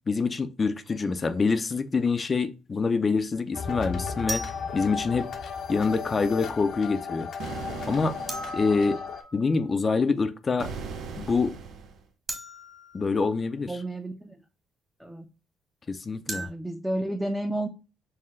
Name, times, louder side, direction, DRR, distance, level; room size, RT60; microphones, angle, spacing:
voice 1, 0.1-4.4 4.7-5.3 5.7-7.3 7.9-8.2 8.5-9.0 9.3-10.7 11.2-11.6 12.9-13.7 15.9-16.5, left 4 dB, 35° left, 0.5 m, -26 dB
sound 1, 0.8-1.0 4.3-5.6 8.3-9.7 12.3-13.5 16.3-16.5, right 1 dB, 30° right, 1.7 m, -38 dB
sound 2, 3.5-9.2, left 6 dB, 65° left, 0.8 m, -35 dB
sound 3, 7.4-8.8 10.6-12.0, right 5 dB, 75° right, 0.7 m, -38 dB
voice 2, 13.7-14.4 15.0-15.2 16.3-17.7, right 1 dB, 5° right, 0.7 m, -31 dB
5.5 x 2.2 x 3.6 m
supercardioid pair, 65°, 0 cm